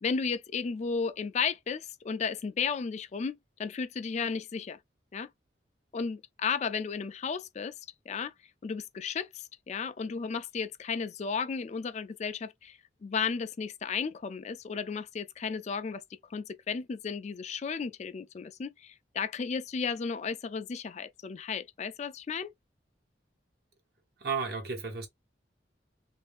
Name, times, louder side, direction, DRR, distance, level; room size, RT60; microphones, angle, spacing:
voice 1, 0.0-4.8 5.1-5.3 5.9-7.7 8.1-8.3 8.6-16.0 16.3-22.5, left 5 dB, 40° left, 0.3 m, -34 dB
voice 2, 24.2-25.1, right 5 dB, 60° right, 1.1 m, -33 dB
3.1 x 2.6 x 3.5 m
head